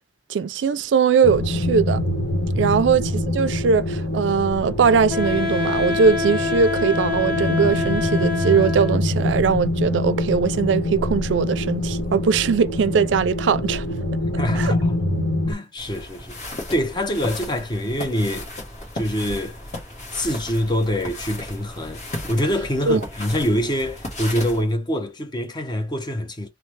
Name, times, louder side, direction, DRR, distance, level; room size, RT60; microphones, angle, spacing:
voice 1, 0.3-2.0 2.6-13.9 14.5-14.7 22.9-23.0, right 6 dB, 80° right, 0.4 m, -20 dB
sound 1, 1.2-15.5, left 1 dB, 70° left, 1.0 m, -25 dB
Wind instrument woodwind instrument, 5.1-9.2, left 4 dB, 5° left, 1.5 m, -26 dB
voice 2, 14.3-15.0 15.5-16.4 16.7-18.5 18.9-19.6 20.1-22.0 22.3-26.5, equal, 25° left, 0.5 m, -25 dB
sound 2, 15.8-24.6, left 1 dB, 40° left, 1.2 m, -35 dB
3.2 x 2.0 x 3.1 m
head